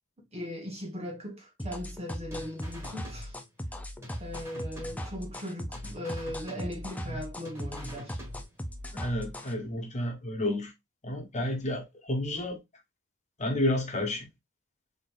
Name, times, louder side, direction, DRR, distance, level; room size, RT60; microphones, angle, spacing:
voice 1, 0.3-3.4 4.2-8.2, equal, 30° right, 1.5 m, -38 dB
sound 1, 1.6-9.5, equal, 5° left, 0.6 m, -38 dB
sound 2, 2.3-3.7 4.0-5.5 5.7-7.2 7.4-8.8, equal, 10° right, 2.1 m, -48 dB
voice 2, 8.9-10.7 11.0-12.6 13.4-14.3, left 1 dB, 35° left, 1.3 m, -31 dB
3.9 x 3.9 x 2.6 m
head